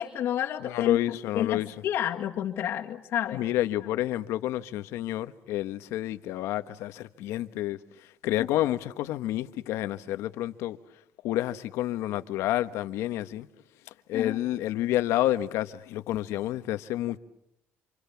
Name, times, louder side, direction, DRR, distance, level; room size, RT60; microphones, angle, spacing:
voice 1, 0.0-3.4 8.4-8.5 14.1-14.4, left 10 dB, 60° left, 2.0 m, -30 dB
voice 2, 0.6-1.7 3.3-7.8 8.2-10.8 11.2-13.5 14.1-17.2, left 14 dB, 85° left, 1.3 m, -29 dB
28.5 x 27.5 x 7.2 m
cardioid pair, 130°, 5 cm